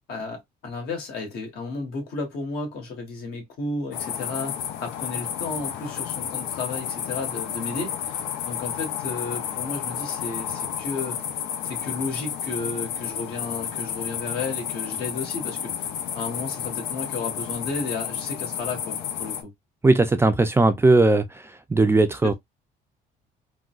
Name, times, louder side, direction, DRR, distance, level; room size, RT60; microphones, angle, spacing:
voice 1, 0.1-11.2 11.6-15.9 16.1-19.5 22.2-22.3, left 3 dB, 70° left, 1.5 m, -33 dB
sound 1, 3.9-19.4, left 9 dB, 90° left, 0.6 m, -31 dB
voice 2, 19.8-21.4 21.7-22.3, right 2 dB, 15° right, 0.4 m, -18 dB
3.7 x 2.2 x 2.3 m
cardioid pair, 110°, 17 cm